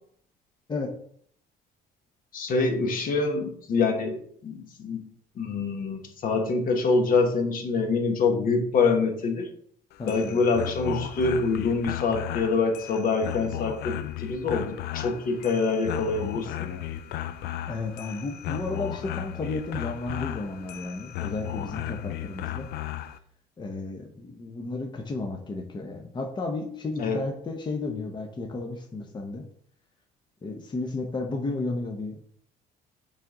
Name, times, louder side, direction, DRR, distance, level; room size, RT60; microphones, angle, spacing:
voice 1, 2.3-5.0 5.3-9.5 10.1-16.8 27.0-27.2, left 4 dB, 55° left, 3 dB, 1.4 m, -25 dB
sound 1, 9.9-23.2, left 12 dB, 75° left, 0.5 m, -35 dB
voice 2, 10.0-10.4 17.7-22.7 23.0-23.1 23.6-29.4 30.4-32.3, left 3 dB, 25° left, 2 dB, 0.8 m, -33 dB
7.5 x 3.6 x 3.8 m, 0.62 s
cardioid pair, 110°, 17 cm